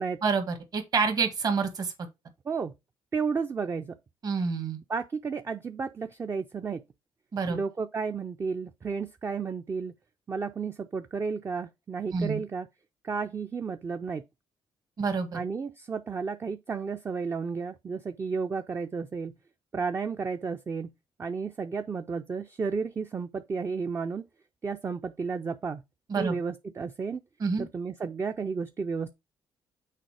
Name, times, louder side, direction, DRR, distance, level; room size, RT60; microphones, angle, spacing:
voice 1, 0.2-1.9 4.2-4.8 7.3-7.6 12.1-12.4 15.0-15.4 26.1-26.4 27.4-27.7, right 5 dB, 45° right, 1.6 m, -27 dB
voice 2, 3.1-4.0 4.9-6.8 7.5-9.9 10.3-12.7 13.0-14.2 15.3-19.4 19.7-20.9 21.2-24.2 24.6-25.8 26.2-27.2 27.6-29.1, right 5 dB, 25° right, 0.5 m, -32 dB
6.6 x 4.2 x 4.7 m
cardioid pair, 125°, 9 cm